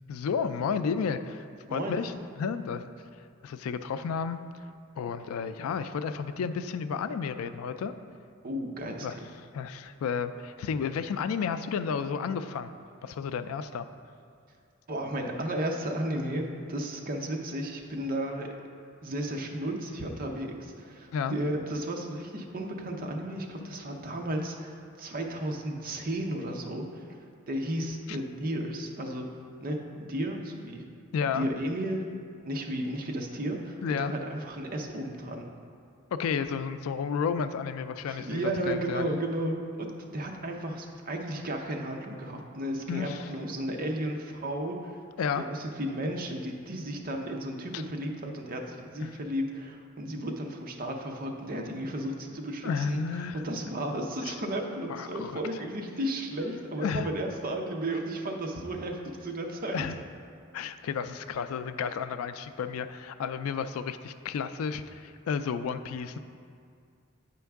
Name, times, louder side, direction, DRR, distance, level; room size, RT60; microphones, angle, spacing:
voice 1, 0.1-2.9 3.4-4.4 5.0-7.9 9.0-9.2 9.5-12.7 13.0-13.9 21.1-21.4 28.1-28.2 31.1-31.5 33.8-34.1 36.1-39.1 42.9-43.3 45.2-45.4 47.7-47.8 49.0-49.1 52.6-53.4 54.3-54.4 54.9-55.4 56.8-57.1 59.7-60.0 60.5-66.2, left 6 dB, 80° left, 12 dB, 0.3 m, -32 dB
voice 2, 8.4-9.3 14.9-18.5 19.0-27.2 27.5-29.3 29.6-30.8 31.2-32.0 32.4-35.5 38.1-45.0 45.4-59.8, right 1 dB, 45° right, 2 dB, 0.6 m, -34 dB
8.6 x 4.5 x 3.5 m, 2.3 s
head